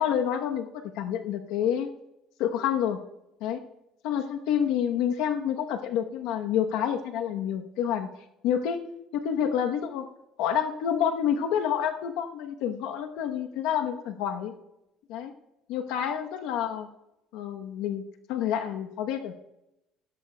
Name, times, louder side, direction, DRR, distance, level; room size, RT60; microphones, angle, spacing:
voice 1, 0.0-1.9 2.4-3.0 3.4-3.6 4.0-8.1 8.4-8.8 9.1-10.1 10.4-14.5 15.1-15.3 15.7-16.9 17.3-18.0 18.3-19.5, left 9 dB, 80° left, 5 dB, 1.0 m, -28 dB
16.0 x 16.0 x 2.3 m, 0.88 s
cardioid pair, 125°, 0 cm